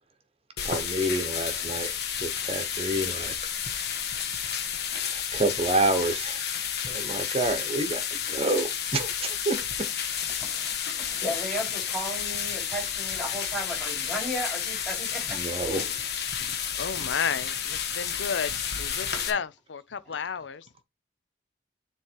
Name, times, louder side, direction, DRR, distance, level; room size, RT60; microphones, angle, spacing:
sound 1, 0.6-19.3, left 8 dB, 65° left, 1.2 m, -31 dB
voice 1, 0.6-1.9 2.2-3.4 4.9-6.5 6.8-9.9 11.1-11.2 15.3-15.9, right 2 dB, 35° right, 1.0 m, -29 dB
voice 2, 10.4-15.4, equal, 5° left, 3.6 m, -35 dB
voice 3, 16.4-20.8, left 6 dB, 90° left, 0.6 m, -33 dB
7.2 x 3.2 x 4.5 m
head